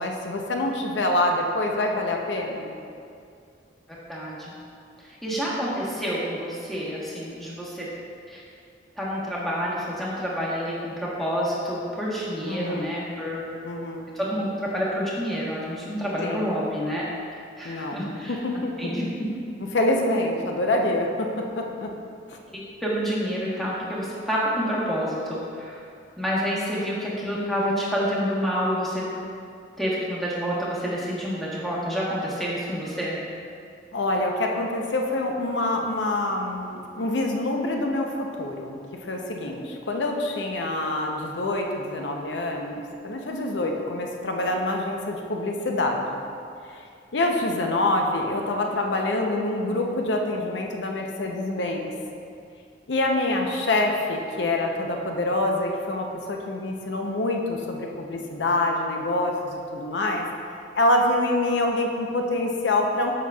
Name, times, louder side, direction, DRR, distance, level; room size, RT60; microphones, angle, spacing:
voice 1, 0.0-2.8 12.4-12.9 13.6-14.1 16.2-16.5 17.6-18.0 18.3-18.9 19.7-21.9 22.3-22.4 33.9-46.2 46.7-46.8 47.1-51.9 52.9-60.3 60.7-63.1, left 2 dB, 70° left, 1 dB, 0.6 m, -26 dB
voice 2, 4.1-4.5 5.2-7.9 8.3-8.4 9.0-13.4 14.1-17.0 17.6-18.4 18.8-19.0 22.8-25.8 26.2-29.0 29.8-33.2, equal, ahead, -7 dB, 1.1 m, -28 dB
7.4 x 5.8 x 2.3 m, 2.4 s
head